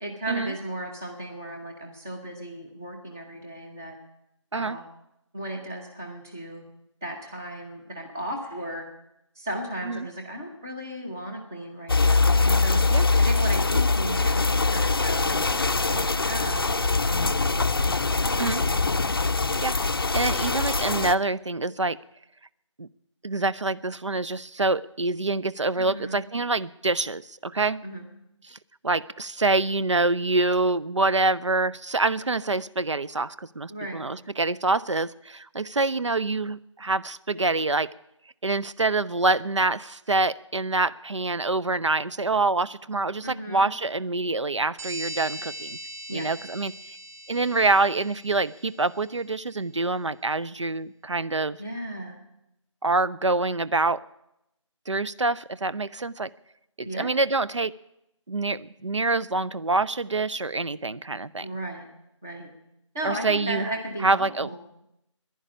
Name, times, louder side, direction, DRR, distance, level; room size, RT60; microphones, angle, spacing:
voice 1, 0.0-4.0 4.5-4.8 5.3-6.6 7.0-8.9 9.4-15.4 15.7-17.6 17.8-18.3 25.8-26.2 27.8-28.0 33.7-34.0 43.2-43.7 46.1-46.3 51.6-52.2 56.8-57.1 61.4-61.9 62.2-62.5 62.9-64.6, right 1 dB, 5° right, 1 dB, 0.6 m, -35 dB
sound 1, 11.9-21.1, left 3 dB, 45° left, 0.5 m, -23 dB
voice 2, 19.6-22.0 22.8-22.9 23.2-27.8 28.5-28.6 28.8-37.9 38.4-45.8 46.1-47.0 47.3-51.6 52.8-54.0 54.9-56.3 56.8-57.7 58.3-61.5 63.0-63.7 64.0-64.5, right 3 dB, 65° right, 17 dB, 0.5 m, -26 dB
sound 2, 44.8-49.1, right 1 dB, 30° right, 1.1 m, -40 dB
11.0 x 10.5 x 9.8 m, 0.84 s
figure-of-eight pair, 160°, 16 cm